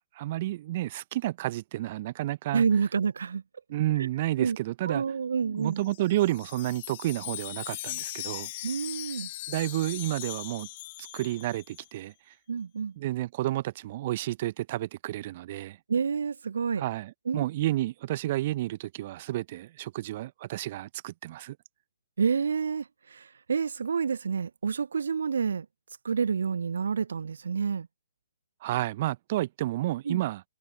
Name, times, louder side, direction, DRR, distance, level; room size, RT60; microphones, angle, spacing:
voice 1, 0.1-2.6 3.7-5.0 5.4-8.5 9.5-10.7 11.0-12.3 13.0-15.8 16.8-21.6 28.6-30.4, right 15 dB, 35° right, 1.1 m, -31 dB
voice 2, 2.5-3.4 4.0-4.1 4.4-4.6 4.8-5.8 8.6-9.3 12.5-12.9 15.9-16.8 17.3-17.4 22.2-25.7 26.0-27.9 30.0-30.2, right 6 dB, 60° right, 0.9 m, -28 dB
Wind chime, 5.7-11.9, left 16 dB, 35° left, 2.4 m, -39 dB
figure-of-eight pair, 130°, 0 cm